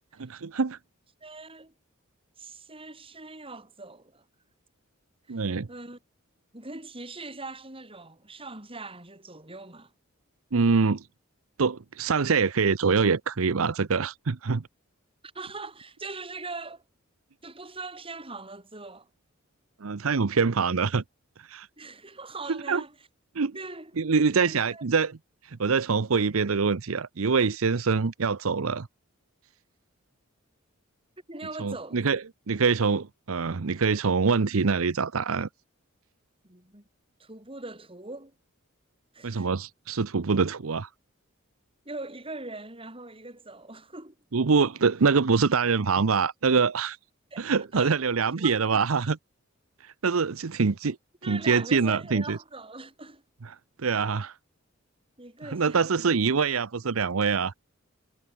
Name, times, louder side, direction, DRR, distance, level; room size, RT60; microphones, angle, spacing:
voice 1, 0.2-0.8 5.3-5.7 10.5-11.0 11.6-14.6 19.8-21.0 21.4-21.7 22.5-22.8 23.3-23.5 24.0-25.2 25.4-28.9 31.6-32.2 32.5-35.5 39.2-40.9 44.3-47.0 47.4-49.2 49.8-51.0 51.3-52.4 53.8-54.3 55.5-57.5, right 5 dB, 80° right, 0.7 m, -24 dB
voice 2, 1.2-1.7 2.4-4.2 5.3-6.0 6.5-9.9 15.3-16.8 17.4-19.1 21.8-22.9 23.4-24.0 24.4-24.8 31.3-32.2 36.4-36.8 37.2-38.3 39.1-39.5 41.8-44.1 47.3-48.0 48.4-49.1 51.2-53.2 55.2-56.1, right 3 dB, 25° right, 6.6 m, -41 dB
head